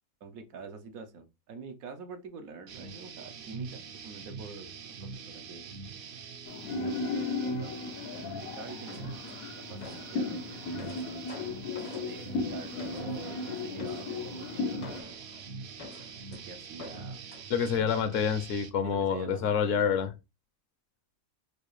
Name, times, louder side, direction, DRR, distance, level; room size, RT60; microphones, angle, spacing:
voice 1, 0.2-5.7 6.8-10.7 12.0-15.2 16.3-17.2 18.8-19.9, right 4 dB, 85° right, 1.2 m, -46 dB
sound 1, 2.7-18.7, right 5 dB, 60° right, 0.6 m, -44 dB
sound 2, 6.5-15.0, left 3 dB, 90° left, 1.1 m, -36 dB
sound 3, 8.9-10.2 10.5-13.3 13.8-14.2 14.8-16.4 16.8-17.5, left 3 dB, 45° left, 0.5 m, -48 dB
voice 2, 17.5-20.1, left 7 dB, 70° left, 0.9 m, -27 dB
4.9 x 2.4 x 3.1 m
omnidirectional pair, 1.4 m